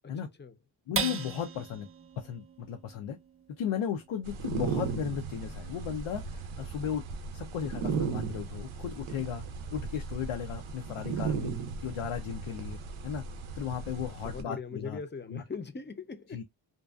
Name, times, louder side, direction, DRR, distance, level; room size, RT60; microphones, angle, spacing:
voice 1, 0.0-0.5 14.2-16.4, left 5 dB, 25° left, 0.5 m, -41 dB
voice 2, 0.9-1.9 2.2-3.2 3.6-7.0 7.3-9.4 9.7-11.5 11.8-13.2 13.6-15.0 15.3-15.4 16.3-16.4, left 8 dB, 85° left, 0.5 m, -35 dB
sound 1, 0.9-7.6 8.1-8.2 8.6-9.1, right 5 dB, 30° right, 0.5 m, -41 dB
sound 2, 4.2-14.4, right 5 dB, 80° right, 0.6 m, -36 dB
2.6 x 2.2 x 2.2 m
cardioid pair, 45°, 49 cm